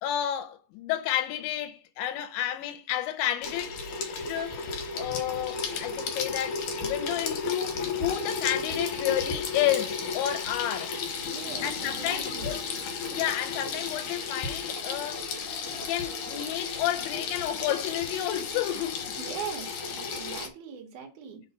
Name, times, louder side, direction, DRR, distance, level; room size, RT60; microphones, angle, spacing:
voice 1, 0.0-3.8 4.3-10.9 11.6-12.6 13.1-15.2 15.9-19.1, left 12 dB, 90° left, 3.0 m, -31 dB
Water tap faucet / Sink (filling or washing), 3.4-20.5, left 4 dB, 70° left, 1.9 m, -33 dB
voice 2, 11.2-12.6 19.2-21.4, right 7 dB, 75° right, 1.8 m, -40 dB
6.4 x 3.9 x 5.4 m
omnidirectional pair, 5.2 m